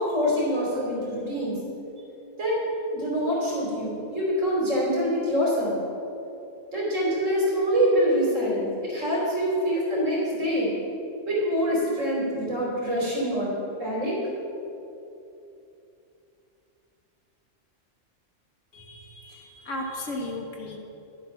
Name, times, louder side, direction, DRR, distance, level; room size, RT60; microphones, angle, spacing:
voice 1, 0.0-1.6 2.4-2.6 2.9-5.8 6.7-10.7 11.3-13.5 13.8-14.2, equal, 75° right, -5 dB, 3.7 m, -25 dB
voice 2, 18.7-20.8, left 1 dB, 75° left, 0 dB, 1.9 m, -35 dB
12.5 x 7.8 x 5.8 m, 2.8 s
omnidirectional pair, 1.3 m